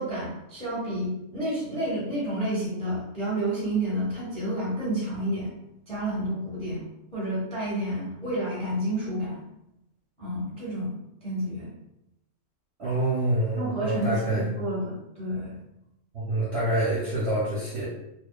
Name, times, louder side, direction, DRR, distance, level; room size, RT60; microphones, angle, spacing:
voice 1, 0.0-5.5 5.9-6.8 7.1-9.4 10.2-10.9 11.2-11.7 13.5-15.6, right 1 dB, 5° left, -8 dB, 0.8 m, -30 dB
voice 2, 12.8-14.5 16.1-17.8, right 1 dB, 55° right, -9 dB, 0.8 m, -26 dB
2.8 x 2.3 x 2.3 m, 0.86 s
omnidirectional pair, 1.8 m